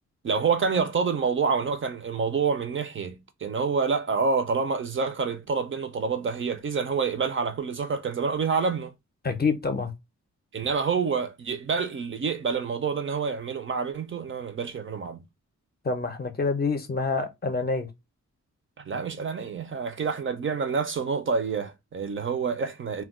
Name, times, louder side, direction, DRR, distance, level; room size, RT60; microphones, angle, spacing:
voice 1, 0.2-8.9 10.5-15.2 18.8-23.0, right 5 dB, 45° right, 0.4 m, -27 dB
voice 2, 9.2-9.9 15.8-17.9, left 4 dB, 30° left, 0.5 m, -27 dB
2.2 x 2.1 x 3.4 m
wide cardioid pair, 155°, 30 cm